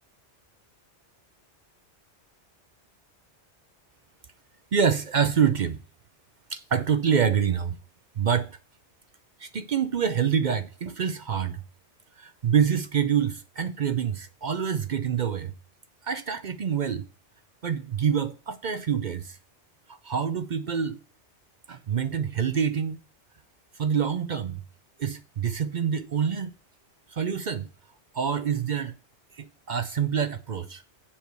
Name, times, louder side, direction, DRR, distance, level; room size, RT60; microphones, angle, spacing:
voice 1, 4.7-5.8 6.5-7.8 8.2-8.6 9.4-11.6 12.2-15.5 16.0-17.1 17.6-19.4 20.0-21.0 21.7-23.0 23.7-24.6 25.0-26.5 27.1-27.7 28.1-28.9 29.3-30.8, right 7 dB, 50° right, 0.6 m, -26 dB
7.3 x 4.6 x 6.8 m
omnidirectional pair, 1.2 m